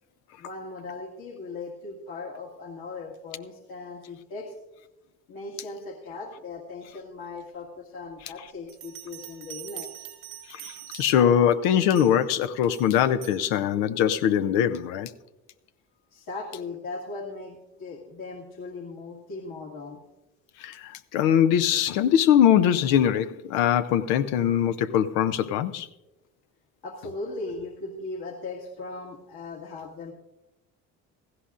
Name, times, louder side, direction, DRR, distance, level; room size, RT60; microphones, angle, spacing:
voice 1, 0.4-4.6 5.3-10.1 16.1-20.0 26.8-30.1, left 3 dB, 60° left, 1.9 m, -38 dB
Bell, 8.7-11.4 11.9-12.3 12.7-13.4, right 13 dB, 90° right, 2.0 m, -43 dB
voice 2, 10.5-15.1 20.6-25.9, left 9 dB, 85° left, 0.7 m, -22 dB
17.0 x 15.0 x 2.5 m
hypercardioid pair, 60°, 40 cm